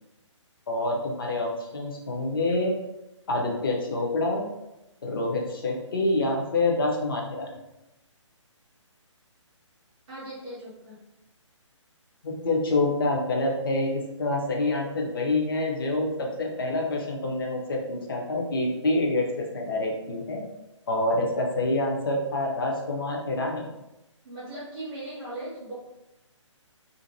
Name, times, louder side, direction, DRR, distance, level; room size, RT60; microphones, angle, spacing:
voice 1, 0.7-2.8 3.3-4.5 5.0-7.6 12.2-20.5 20.9-23.7, left 2 dB, 45° left, 0 dB, 0.6 m, -27 dB
voice 2, 10.1-11.0 24.2-25.7, right 1 dB, 15° right, -10 dB, 0.6 m, -38 dB
2.6 x 2.4 x 2.6 m, 0.95 s
figure-of-eight pair, 140°, 16 cm